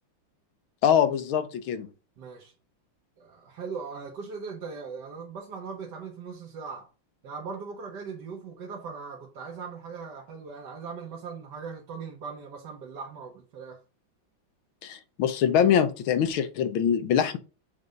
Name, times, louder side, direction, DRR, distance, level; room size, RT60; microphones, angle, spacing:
voice 1, 0.8-1.9 14.8-17.4, left 8 dB, 80° left, 1.6 m, -23 dB
voice 2, 2.2-2.5 3.2-6.9 7.2-13.8, right 5 dB, 60° right, 1.6 m, -39 dB
6.7 x 3.5 x 5.2 m
omnidirectional pair, 2.2 m